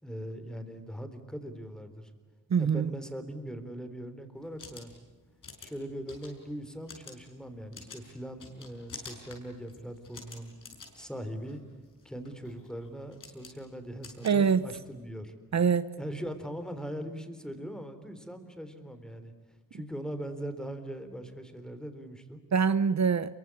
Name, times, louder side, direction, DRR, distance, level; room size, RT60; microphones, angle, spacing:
voice 1, 0.0-2.1 2.6-4.9 5.6-10.5 10.9-11.6 12.0-15.4 16.0-19.3 19.7-22.4, equal, ahead, 8 dB, 3.6 m, -40 dB
voice 2, 2.5-2.9 14.2-14.6 15.5-15.9 22.5-23.4, right 6 dB, 55° right, 14 dB, 0.8 m, -24 dB
sound 1, 4.4-15.0, left 4 dB, 75° left, 6.8 m, -50 dB
29.5 x 23.5 x 8.4 m, 1.3 s
wide cardioid pair, 120°, 32 cm